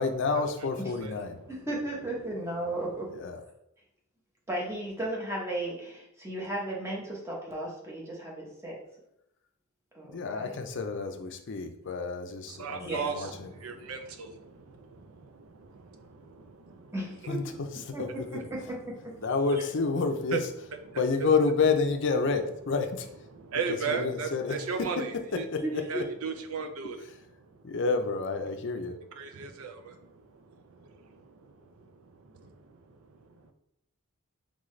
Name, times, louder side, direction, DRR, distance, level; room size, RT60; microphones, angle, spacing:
voice 1, 0.0-1.4 3.1-3.4 10.1-13.5 17.3-17.4 17.8-18.4 19.2-20.4 21.0-23.1 23.9-25.8 27.6-29.0, left 4 dB, 55° left, 6 dB, 0.5 m, -29 dB
voice 2, 1.5-3.1 4.5-8.8 9.9-10.6 12.8-13.3 16.9-17.4 17.9-19.2 19.6-19.7 25.6-26.0, right 1 dB, 10° right, -2 dB, 1.0 m, -35 dB
voice 3, 12.5-17.0 17.8-18.5 20.3-20.4 20.7-21.3 23.3-25.4 25.9-27.0 27.4-27.6 29.2-33.5, right 5 dB, 70° right, 7 dB, 0.5 m, -37 dB
3.9 x 3.6 x 3.2 m, 0.81 s
head